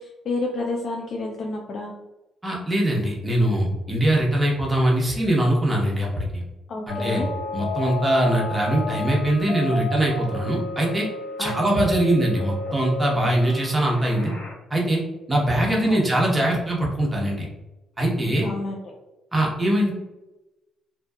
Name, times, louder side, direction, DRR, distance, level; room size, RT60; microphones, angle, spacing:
voice 1, 0.0-1.9 6.7-7.3 11.4-11.9 15.6-16.0 18.4-18.8, left 2 dB, 55° left, 0 dB, 0.3 m, -30 dB
voice 2, 2.4-6.4 6.9-7.2 7.5-11.1 11.4-14.3 14.7-15.0 15.3-17.5 18.0-18.5 19.3-19.9, right 1 dB, 15° right, -3 dB, 0.8 m, -22 dB
sound 1, 6.9-14.5, left 2 dB, 75° left, 0.8 m, -33 dB
2.7 x 2.2 x 2.3 m, 1.0 s
cardioid pair, 90°, 0 cm